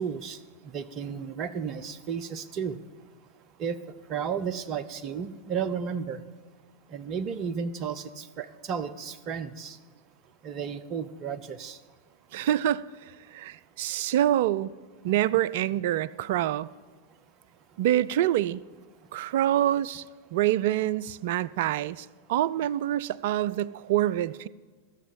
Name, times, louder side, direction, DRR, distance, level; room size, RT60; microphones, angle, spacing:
voice 1, 0.0-2.8 3.4-6.2 6.9-9.8 10.4-11.8 15.1-15.2 15.8-15.9 17.7-17.8 19.0-19.3, right 6 dB, 35° right, 0.7 m, -34 dB
voice 2, 12.3-12.8 13.3-14.7 15.0-16.7 17.8-18.6 19.1-20.0 20.3-24.5, right 12 dB, 50° right, 0.3 m, -26 dB
14.5 x 7.1 x 7.0 m
figure-of-eight pair, 90°, 0 cm